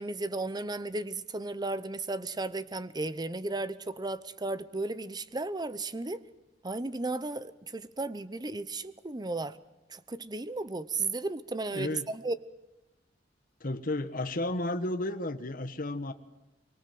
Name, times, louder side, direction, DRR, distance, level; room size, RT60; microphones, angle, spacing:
voice 1, 0.0-6.2 6.6-9.6 9.9-12.4, right 2 dB, 25° right, 15 dB, 0.9 m, -34 dB
voice 2, 11.7-12.1 13.6-16.1, left 2 dB, 50° left, 8 dB, 1.3 m, -33 dB
24.5 x 23.5 x 7.9 m, 0.99 s
head